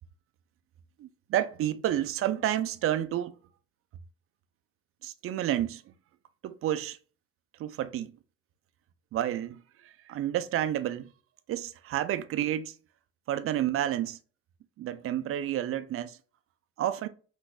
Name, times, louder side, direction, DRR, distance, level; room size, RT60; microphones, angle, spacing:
voice 1, 1.0-3.4 5.0-5.8 6.4-7.0 7.6-8.1 9.1-11.1 11.5-12.7 13.3-14.2 14.8-16.2 16.8-17.1, right 12 dB, 45° right, 0.5 m, -30 dB
3.9 x 2.7 x 2.3 m
hypercardioid pair, 55°, 31 cm